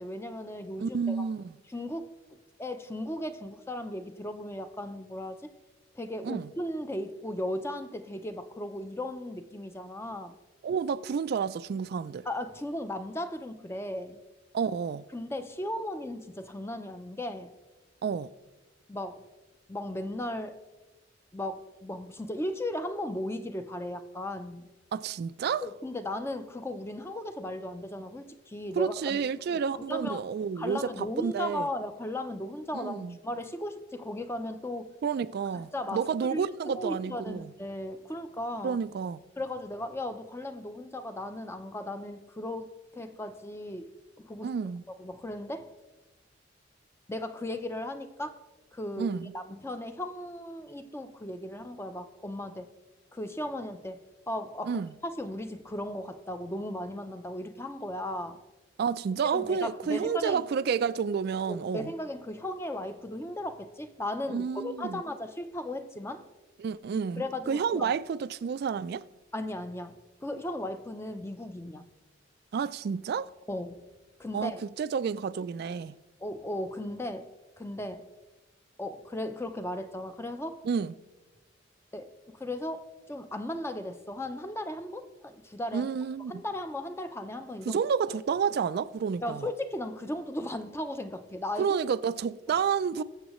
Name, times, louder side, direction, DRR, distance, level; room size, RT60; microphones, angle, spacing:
voice 1, 0.0-1.3 1.7-5.5 5.9-10.4 12.3-14.2 15.1-17.5 18.9-19.2 19.7-20.6 21.3-24.7 25.6-29.2 29.5-30.2 30.6-34.9 35.5-36.0 36.3-38.8 39.4-43.9 44.2-44.5 44.9-45.7 47.1-48.4 48.7-52.7 53.1-54.0 54.3-58.4 59.3-60.4 61.5-66.2 67.2-67.9 69.3-71.8 73.5-73.8 74.2-74.6 76.2-77.3 77.6-78.1 78.8-80.7 81.9-85.9 86.3-87.8 89.2-91.7 92.9-93.0, left 1 dB, 15° left, 0.6 m, -36 dB
voice 2, 0.8-1.5 6.2-6.5 10.6-12.3 14.5-15.0 18.0-18.3 24.9-25.6 28.8-31.7 32.7-33.2 35.0-37.5 38.6-39.2 44.4-44.8 49.0-49.3 54.7-54.9 58.8-61.9 64.3-65.0 66.6-69.0 72.5-73.3 74.3-76.0 80.6-80.9 85.7-86.4 87.7-89.4 91.6-93.0, right 6 dB, 55° right, 0.3 m, -30 dB
21.5 x 7.2 x 3.0 m
head